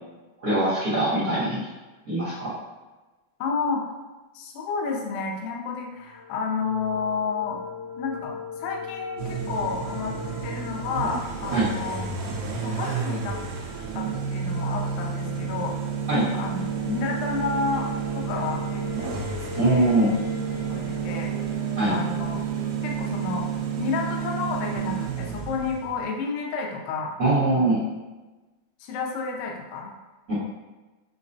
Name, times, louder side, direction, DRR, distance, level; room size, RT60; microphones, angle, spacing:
voice 1, 0.4-1.6 2.0-2.5 11.5-11.7 16.1-16.3 19.6-20.1 21.8-21.9 27.2-27.8 30.3-30.4, right 2 dB, 65° right, -13 dB, 0.9 m, -22 dB
voice 2, 3.4-3.8 4.3-7.6 8.0-10.2 10.4-13.4 13.9-15.7 16.3-17.9 18.1-19.2 19.5-20.0 20.7-21.3 21.9-22.4 22.8-23.5 23.8-27.2 27.5-27.8 28.8-29.9, left 5 dB, 80° left, 0 dB, 2.3 m, -31 dB
sound 1, 5.9-22.7, left 5 dB, 65° left, 1.9 m, -41 dB
sound 2, 9.2-26.0, right 7 dB, 90° right, 2.5 m, -30 dB
5.7 x 2.1 x 2.6 m, 1.2 s
omnidirectional pair, 4.2 m